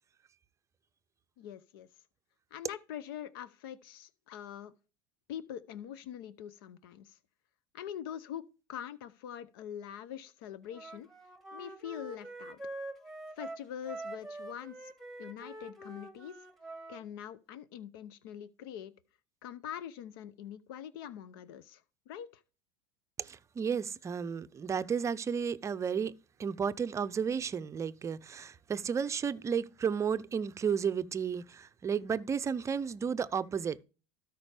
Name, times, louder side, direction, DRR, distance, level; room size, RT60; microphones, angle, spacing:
voice 1, 1.4-1.9 2.5-4.7 5.3-7.2 7.7-11.1 11.5-12.6 13.4-14.9 15.2-16.4 16.9-18.9 19.4-22.4, left 10 dB, 75° left, 0.7 m, -44 dB
Wind instrument woodwind instrument, 10.7-17.0, right 2 dB, ahead, 1.4 m, -45 dB
voice 2, 23.2-26.1 26.4-33.8, right 7 dB, 25° right, 0.5 m, -33 dB
13.0 x 5.2 x 3.4 m
supercardioid pair, 100°, 12 cm